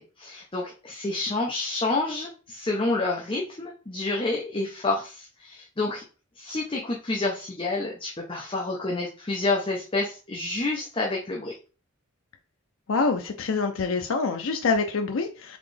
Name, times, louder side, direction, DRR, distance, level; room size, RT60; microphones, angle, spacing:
voice 1, 0.0-6.0 6.4-11.6, left 2 dB, 25° left, 0.7 m, -29 dB
voice 2, 12.9-15.6, left 4 dB, 70° left, 0.5 m, -26 dB
4.1 x 3.7 x 3.3 m
head